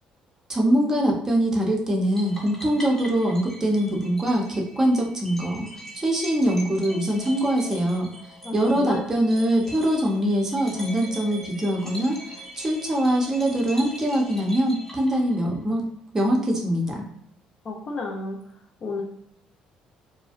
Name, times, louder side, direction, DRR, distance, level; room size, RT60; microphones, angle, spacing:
voice 1, 0.5-5.7 5.9-8.1 8.5-12.2 12.5-15.8 16.1-17.0, right 1 dB, 20° right, 0 dB, 0.6 m, -23 dB
sound 1, 2.2-15.6, equal, 15° left, 0.9 m, -42 dB
voice 2, 8.4-9.0 17.6-18.4 18.8-19.0, left 3 dB, 45° left, 1 dB, 0.5 m, -31 dB
2.4 x 2.1 x 2.5 m, 0.71 s
cardioid pair, 105°, 2 cm